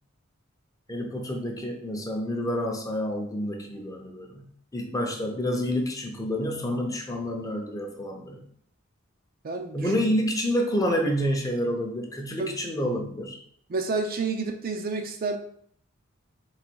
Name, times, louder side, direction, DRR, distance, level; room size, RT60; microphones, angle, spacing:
voice 1, 0.9-4.5 4.7-8.4 9.7-13.4, equal, 15° left, 2 dB, 0.6 m, -28 dB
voice 2, 9.4-9.9 12.4-12.5 13.7-15.4, right 4 dB, 45° right, 5 dB, 0.4 m, -29 dB
3.9 x 2.6 x 4.5 m, 0.62 s
head